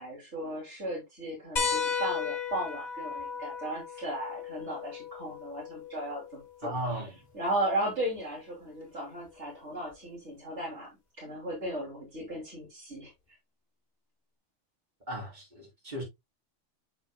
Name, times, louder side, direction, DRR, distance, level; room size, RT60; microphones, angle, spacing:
voice 1, 0.0-10.9 11.2-13.1, right 1 dB, 70° right, 3.2 m, -36 dB
sound 1, 1.6-6.6 8.2-8.3 9.9-10.0, left 6 dB, 40° left, 1.4 m, -35 dB
voice 2, 6.6-7.2 15.1-16.0, right 1 dB, 40° right, 4.3 m, -36 dB
7.7 x 7.0 x 2.2 m
omnidirectional pair, 1.2 m